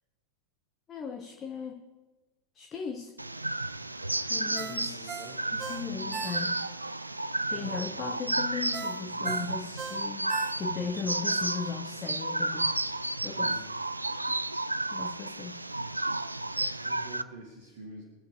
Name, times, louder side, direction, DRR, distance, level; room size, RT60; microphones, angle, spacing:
voice 1, 0.9-1.9 2.5-3.2 4.3-5.2 5.5-6.7 7.5-12.8 13.2-13.6 14.3-14.4 14.9-15.7, left 6 dB, 25° left, 4 dB, 1.0 m, -37 dB
sound 1, 3.2-17.2, right 2 dB, 85° right, 0.4 m, -32 dB
voice 2, 4.3-5.4 7.5-8.1 8.8-9.6 13.2-13.6 16.5-18.0, right 2 dB, 60° right, 1 dB, 2.1 m, -48 dB
Ringtone, 4.5-6.8 7.2-7.3 8.7-11.0 11.4-11.5, right 6 dB, 25° right, 0.7 m, -40 dB
23.0 x 7.6 x 4.7 m, 1.2 s
figure-of-eight pair, 90°, 0 cm